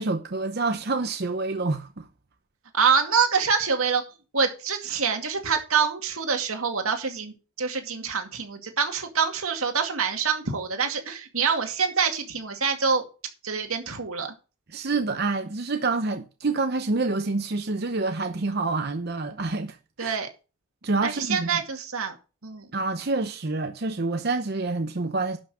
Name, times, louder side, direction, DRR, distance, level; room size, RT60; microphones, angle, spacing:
voice 1, 0.0-2.1 14.7-20.2 20.8-21.5 22.7-25.4, right 3 dB, 50° right, 0.8 m, -27 dB
voice 2, 2.7-4.0 4.3-13.0 13.4-14.3 20.0-20.3 21.0-22.2 22.4-22.7, right 6 dB, 85° right, 2.3 m, -26 dB
11.5 x 5.9 x 6.4 m
head